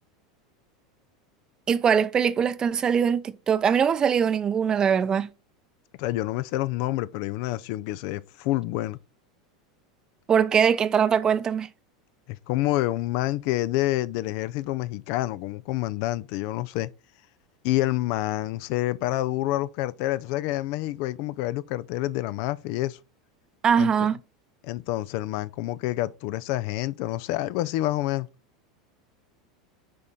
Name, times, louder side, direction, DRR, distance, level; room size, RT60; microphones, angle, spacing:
voice 1, 1.7-5.3 10.3-11.7 23.6-24.2, right 7 dB, 25° right, 0.6 m, -22 dB
voice 2, 6.0-9.0 12.3-16.9 17.6-23.0 23.8-23.9 24.6-28.3, left 16 dB, 50° left, 0.4 m, -28 dB
9.7 x 4.3 x 3.8 m
figure-of-eight pair, 80°, 3 cm